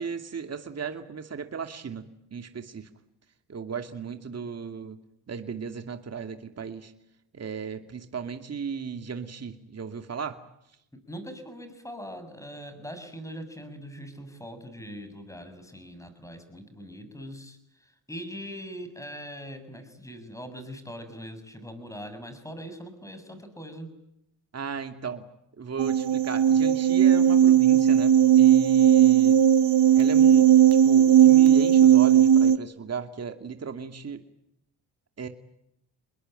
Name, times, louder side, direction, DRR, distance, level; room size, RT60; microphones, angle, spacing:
voice 1, 0.0-2.9 3.5-5.0 5.3-6.9 7.3-10.4 24.5-25.3 25.6-29.4 29.9-34.2 35.2-35.3, right 6 dB, 35° right, 6 dB, 2.6 m, -35 dB
voice 2, 11.1-17.6 18.1-23.9, equal, 5° left, 9 dB, 7.2 m, -41 dB
sound 1, 25.8-32.6, right 10 dB, 65° right, 1.2 m, -17 dB
28.5 x 21.5 x 9.1 m, 0.78 s
cardioid pair, 95°, 43 cm